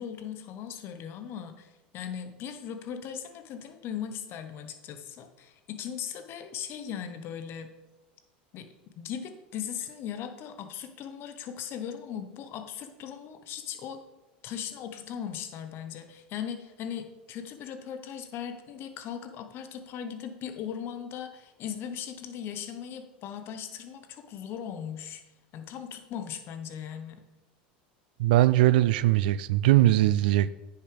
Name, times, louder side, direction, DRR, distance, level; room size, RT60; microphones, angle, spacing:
voice 1, 0.0-7.7 8.5-8.7 9.0-14.0 14.4-25.2 25.5-27.2, left 8 dB, 50° left, 1.1 m, -38 dB
voice 2, 28.2-30.5, right 15 dB, 75° right, 0.4 m, -21 dB
9.4 x 6.8 x 3.5 m
hypercardioid pair, 95°, 5 cm